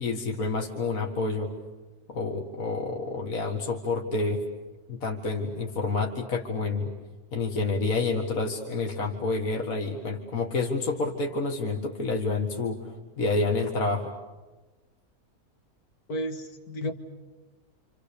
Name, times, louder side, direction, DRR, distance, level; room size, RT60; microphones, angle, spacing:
voice 1, 0.0-1.5 2.1-4.4 4.9-6.9 7.3-12.9 13.2-14.1, left 3 dB, 65° left, 2 dB, 2.2 m, -28 dB
voice 2, 16.1-16.9, equal, 85° left, 6 dB, 2.3 m, -32 dB
28.5 x 27.5 x 6.9 m, 1.2 s
omnidirectional pair, 1.6 m